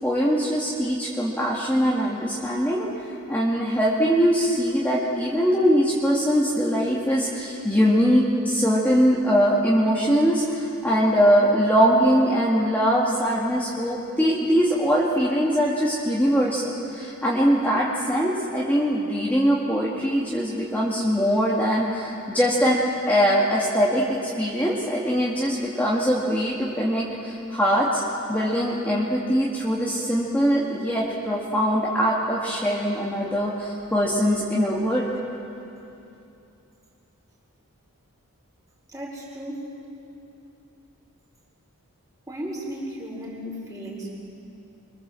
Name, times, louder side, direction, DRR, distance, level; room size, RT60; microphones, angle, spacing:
voice 1, 0.0-2.9 3.3-22.8 23.1-28.0 28.3-35.1, equal, 10° left, -5 dB, 2.0 m, -22 dB
voice 2, 38.9-39.7 42.3-44.1, equal, 15° right, -3 dB, 5.1 m, -35 dB
25.5 x 23.5 x 7.6 m, 2.8 s
head